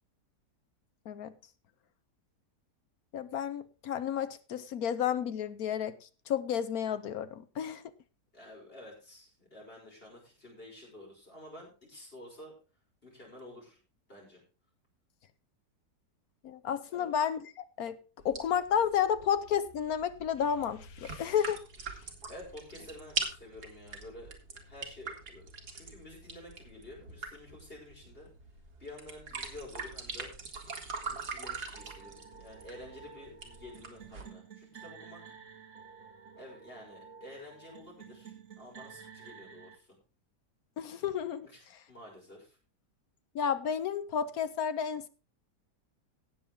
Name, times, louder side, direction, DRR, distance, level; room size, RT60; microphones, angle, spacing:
voice 1, 3.1-7.8 16.4-18.0 18.2-21.6 40.8-41.5 43.3-45.1, left 8 dB, 65° left, 13 dB, 1.1 m, -31 dB
voice 2, 8.3-12.6 13.0-13.8 14.1-14.4 16.9-17.1 22.3-24.3 24.6-25.5 25.7-28.3 28.8-30.4 31.1-35.2 36.4-40.0 41.4-42.6, left 1 dB, 35° left, -2 dB, 5.9 m, -50 dB
sound 1, 18.2-34.2, right 4 dB, 70° right, 2.5 m, -43 dB
sound 2, 31.7-39.8, right 6 dB, 50° right, 2.0 m, -52 dB
17.5 x 7.2 x 3.7 m, 0.35 s
omnidirectional pair, 1.8 m